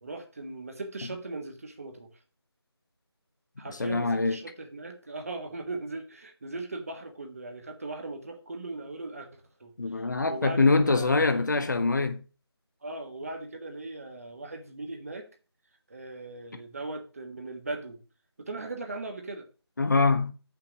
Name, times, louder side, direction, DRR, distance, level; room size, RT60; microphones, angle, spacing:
voice 1, 0.0-2.1 3.6-11.4 12.8-15.3 15.9-18.0 18.4-19.5, right 2 dB, 35° right, 1.4 m, -39 dB
voice 2, 3.7-4.4 9.8-12.2 19.8-20.3, left 3 dB, 45° left, 0.8 m, -24 dB
6.7 x 5.9 x 5.8 m
figure-of-eight pair, 170°, 14 cm